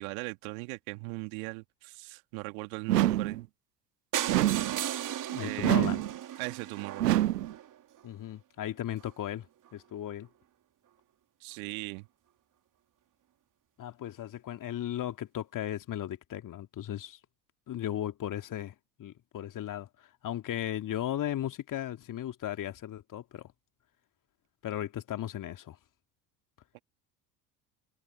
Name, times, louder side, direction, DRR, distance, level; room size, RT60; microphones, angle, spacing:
voice 1, 0.0-3.5 5.4-5.9 6.4-7.2 11.4-12.1 26.7-26.8, right 33 dB, 60° right, 2.6 m, -39 dB
sound 1, 2.9-3.4 4.3-4.8 5.6-6.1 7.0-7.5, right 14 dB, 80° right, 0.8 m, -26 dB
sound 2, 4.1-8.0 8.7-8.8 9.0-9.1 9.4-9.5 9.7-9.8, right 11 dB, 40° right, 2.6 m, -36 dB
voice 2, 5.3-6.0 8.0-9.5 9.7-10.3 13.8-17.2 17.7-23.4 24.6-25.8, left 11 dB, 40° left, 2.4 m, -36 dB
figure-of-eight pair, 65°, 48 cm